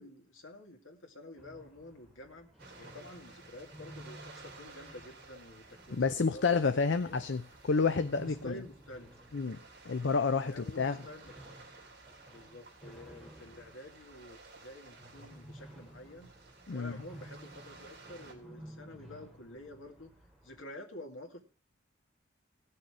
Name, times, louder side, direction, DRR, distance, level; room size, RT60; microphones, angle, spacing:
voice 1, 0.0-2.5 2.8-7.2 8.2-9.1 10.4-11.6 12.3-16.3 16.7-20.1 20.4-21.4, left 1 dB, 80° left, 4 dB, 2.1 m, -49 dB
sound 1, 1.4-20.6, right 1 dB, ahead, 2.8 m, -54 dB
sound 2, 2.6-18.3, right 3 dB, 50° right, 3.0 m, -55 dB
voice 2, 5.9-8.6 9.3-9.6 9.8-11.0 16.7-17.0, left 4 dB, 65° left, 9 dB, 0.6 m, -29 dB
17.0 x 6.7 x 4.8 m, 0.37 s
head